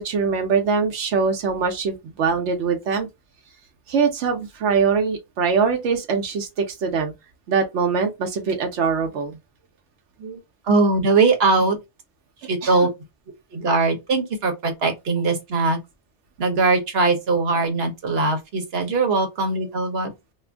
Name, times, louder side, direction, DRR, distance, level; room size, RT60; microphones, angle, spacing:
voice 1, 0.0-3.1 3.9-7.1 7.5-9.4 12.6-12.8, right 5 dB, 90° right, 1.0 m, -22 dB
voice 2, 10.6-11.8 12.4-12.9 13.5-15.8 16.4-20.1, right 3 dB, 65° right, 1.1 m, -21 dB
2.5 x 2.5 x 3.3 m
omnidirectional pair, 1.1 m